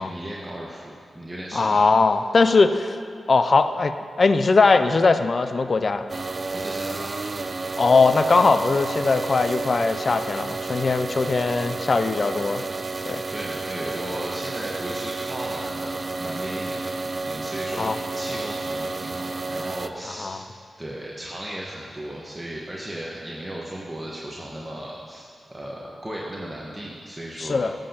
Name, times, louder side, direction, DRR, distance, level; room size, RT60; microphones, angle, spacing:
voice 1, 0.0-1.8 6.5-7.3 13.0-20.5 20.8-27.7, right 1 dB, 20° right, -4 dB, 1.3 m, -36 dB
voice 2, 1.5-2.9 3.3-6.1 7.8-12.6 13.1-13.2 17.8-18.0 20.2-20.4 27.4-27.7, left 4 dB, 55° left, 10 dB, 0.5 m, -20 dB
sound 1, 6.1-19.9, right 3 dB, 50° right, 0.3 m, -31 dB
14.0 x 7.8 x 2.9 m, 2.3 s
supercardioid pair, 40°, 0 cm